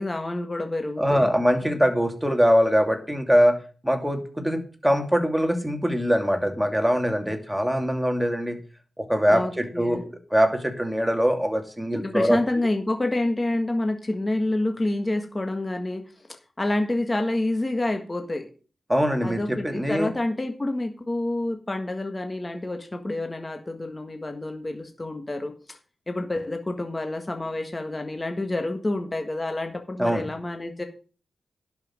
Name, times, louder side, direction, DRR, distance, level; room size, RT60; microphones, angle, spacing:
voice 1, 0.0-1.3 9.3-10.0 11.9-16.0 16.6-18.5 19.2-25.8 26.1-30.8, left 2 dB, 25° left, 5 dB, 1.6 m, -28 dB
voice 2, 1.0-8.6 9.0-12.4 18.9-20.1 30.0-30.2, equal, 5° right, 4 dB, 2.7 m, -23 dB
11.0 x 5.8 x 7.8 m, 0.37 s
cardioid pair, 80°, 0 cm